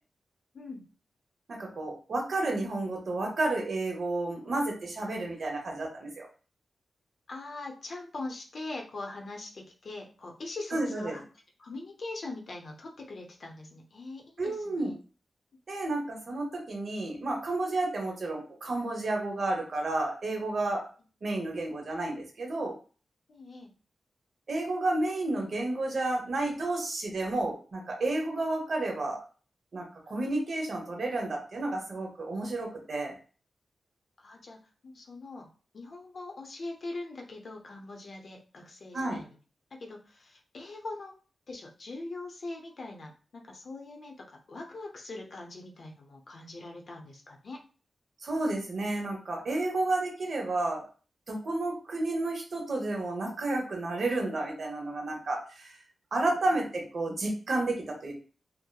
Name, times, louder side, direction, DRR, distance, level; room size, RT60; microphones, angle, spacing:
voice 1, 0.5-0.9 7.3-11.2 11.6-14.9 23.3-23.7 34.2-39.3 39.7-41.1 41.5-47.6 56.3-56.5, left 2 dB, 60° left, 1 dB, 0.6 m, -42 dB
voice 2, 1.5-6.3 10.7-11.2 14.4-14.9 15.7-20.8 21.2-22.7 24.5-29.2 29.7-33.1 38.9-39.2 48.2-50.8 51.3-55.7 56.1-58.1, right 2 dB, 55° right, 1 dB, 0.9 m, -31 dB
2.8 x 2.0 x 2.2 m, 0.37 s
wide cardioid pair, 105°, 0 cm